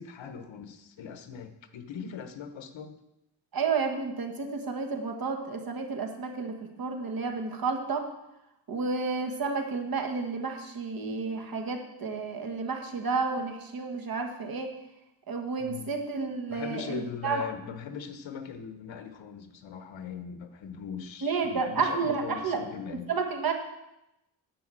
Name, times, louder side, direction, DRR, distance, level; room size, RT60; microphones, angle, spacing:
voice 1, 0.0-2.9 15.6-16.0 16.5-23.1, left 7 dB, 75° left, 9 dB, 1.1 m, -40 dB
voice 2, 3.5-8.0 8.7-14.7 15.3-17.4 21.2-22.6 23.1-23.5, right 4 dB, 50° right, 4 dB, 1.5 m, -31 dB
10.5 x 5.3 x 7.6 m, 0.89 s
wide cardioid pair, 150°, 46 cm